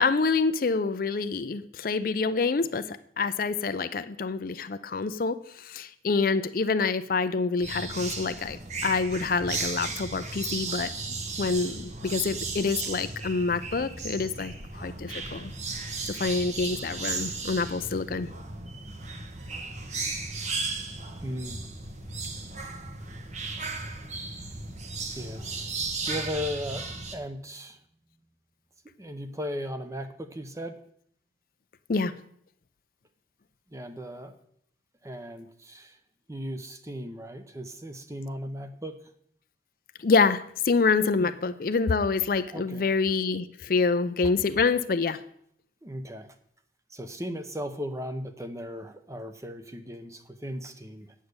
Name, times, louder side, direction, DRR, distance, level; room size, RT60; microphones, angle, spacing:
voice 1, 0.0-10.9 11.4-15.5 16.1-18.3 31.9-32.1 40.0-45.2, left 4 dB, 50° left, 12 dB, 0.5 m, -27 dB
sound 1, 7.6-27.2, right 3 dB, 40° right, 1.1 m, -35 dB
voice 2, 21.2-21.6 25.1-25.5 26.1-27.8 29.0-30.8 33.7-34.4 35.0-36.0 36.3-39.1 41.2-41.3 42.5-42.9 45.8-46.4 46.9-51.1, equal, 15° right, 8 dB, 0.8 m, -37 dB
8.8 x 6.5 x 8.1 m, 0.67 s
head